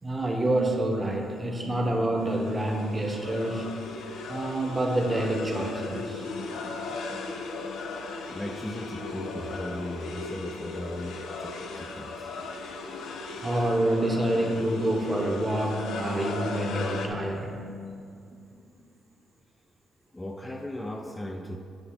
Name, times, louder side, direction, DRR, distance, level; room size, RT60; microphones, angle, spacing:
voice 1, 0.0-3.7 4.3-6.3 13.4-17.6, right 1 dB, 20° right, 0.9 m, -27 dB
sound 1, 2.2-17.1, left 3 dB, 75° left, 0.5 m, -37 dB
voice 2, 8.3-12.3 20.1-21.6, left 1 dB, 10° left, 0.3 m, -37 dB
7.7 x 2.7 x 5.7 m
cardioid pair, 90°, 0 cm